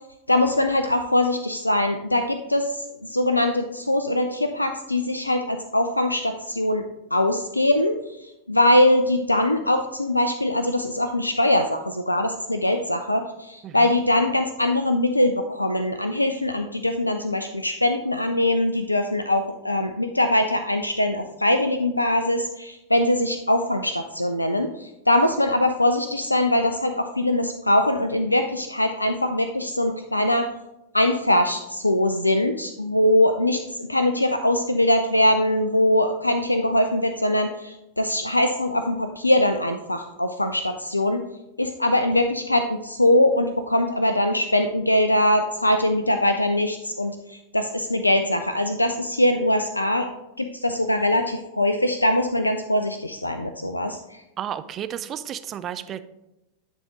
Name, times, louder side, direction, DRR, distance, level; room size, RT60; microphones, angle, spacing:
voice 1, 0.3-6.8 7.1-30.5 30.9-41.2 41.6-50.1 50.4-54.2, left 1 dB, 85° left, 7 dB, 0.3 m, -22 dB
voice 2, 54.4-56.0, right 10 dB, 30° right, 11 dB, 0.4 m, -32 dB
9.8 x 3.6 x 3.8 m, 0.92 s
figure-of-eight pair, 90°, 0 cm